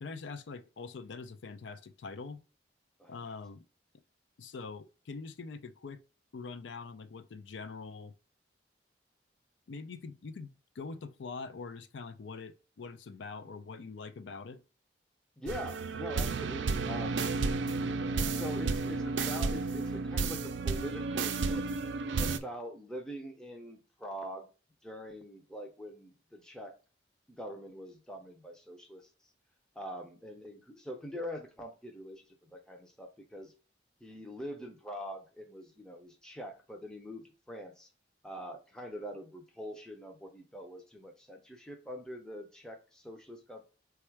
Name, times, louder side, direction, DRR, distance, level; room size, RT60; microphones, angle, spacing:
voice 1, 0.0-2.4 3.1-3.6 4.4-6.0 6.3-8.1 9.7-14.6, left 4 dB, 85° left, 0.4 m, -44 dB
voice 2, 15.4-17.3 18.3-21.6 22.2-24.5 24.8-26.8 27.3-29.1 29.8-33.5 34.0-37.9 38.2-43.6, equal, 5° left, 0.5 m, -44 dB
sound 1, 15.5-22.4, right 4 dB, 85° right, 0.4 m, -32 dB
4.2 x 2.3 x 4.5 m
head